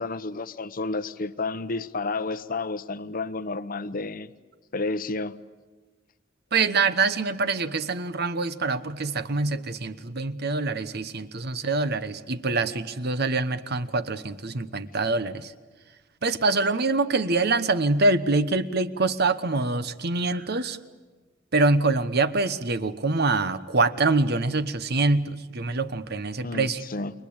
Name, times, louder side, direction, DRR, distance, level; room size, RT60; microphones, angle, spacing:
voice 1, 0.0-4.3 4.7-5.4 26.4-27.1, left 3 dB, 50° left, 0.9 m, -31 dB
voice 2, 6.5-15.5 16.2-20.8 21.5-26.8, right 3 dB, 55° right, 1.1 m, -25 dB
29.5 x 23.0 x 8.8 m
head